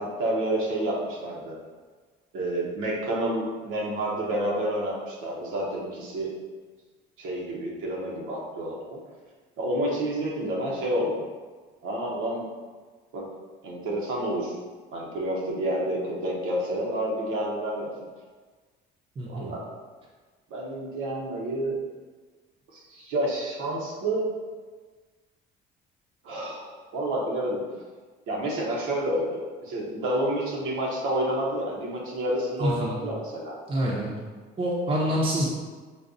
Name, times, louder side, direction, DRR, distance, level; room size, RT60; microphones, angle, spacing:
voice 1, 0.0-1.5 2.3-6.3 7.2-9.0 9.6-11.2 11.8-12.5 13.1-13.2 13.6-14.6 14.9-18.0 19.2-19.6 20.5-21.8 22.7-24.3 26.2-27.6 28.3-33.6, right 1 dB, 85° right, -3 dB, 1.0 m, -29 dB
voice 2, 19.2-19.5 32.6-33.0 33.7-34.1 34.6-35.4, equal, 30° right, -4 dB, 0.6 m, -26 dB
5.2 x 2.3 x 2.5 m, 1.4 s
cardioid pair, 110°, 20 cm